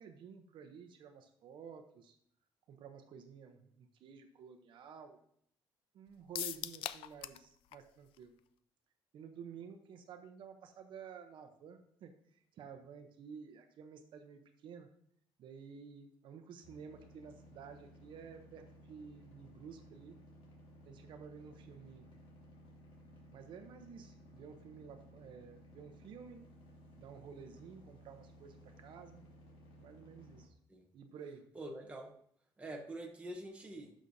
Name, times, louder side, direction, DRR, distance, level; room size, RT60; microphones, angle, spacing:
voice 1, 0.0-2.2 2.7-5.2 5.9-8.3 9.1-12.1 12.5-14.9 15.4-20.2 20.8-22.1 23.3-26.4 27.0-29.3 29.8-30.5 30.9-31.5, right 6 dB, 65° right, 6 dB, 0.8 m, -52 dB
sound 1, 6.3-7.5 7.7-7.8 8.2-8.3, left 13 dB, 90° left, 0.4 m, -40 dB
sound 2, 16.6-30.5, equal, 70° left, 2.4 m, -58 dB
voice 2, 31.5-32.1 32.6-33.9, right 1 dB, 15° right, 0 dB, 1.0 m, -45 dB
11.5 x 6.3 x 2.7 m, 0.65 s
cardioid pair, 145°, 9 cm